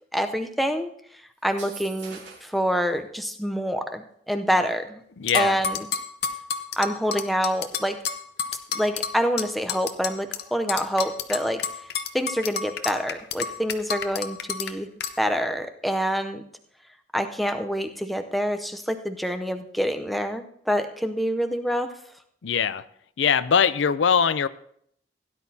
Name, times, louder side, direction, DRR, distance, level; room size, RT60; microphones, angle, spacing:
voice 1, 0.1-0.9 1.4-5.0 5.3-5.9 6.8-8.0 8.7-11.6 12.1-14.9 15.2-16.4 17.1-21.9, equal, ahead, 0.6 m, -26 dB
sound 1, 1.4-2.6, right 5 dB, 70° right, 2.7 m, -43 dB
voice 2, 5.2-5.6 22.4-22.8 23.2-24.5, left 7 dB, 85° left, 0.5 m, -21 dB
sound 2, 5.3-10.4 10.7-14.7 15.0-15.1, left 6 dB, 55° left, 0.8 m, -30 dB
16.5 x 10.5 x 2.8 m
head